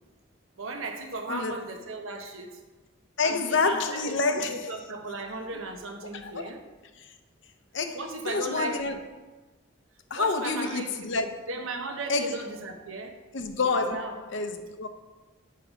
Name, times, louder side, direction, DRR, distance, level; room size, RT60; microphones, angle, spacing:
voice 1, 0.6-2.6 3.2-6.6 7.9-8.8 10.1-10.9 11.5-13.2 13.7-14.1, right 2 dB, 85° right, 1.0 m, -36 dB
voice 2, 1.3-1.6 3.2-4.8 6.1-6.6 7.0-7.1 7.7-9.0 10.1-11.5 12.1-12.4 13.3-14.9, left 3 dB, 65° left, 0.7 m, -28 dB
6.6 x 5.5 x 5.2 m
head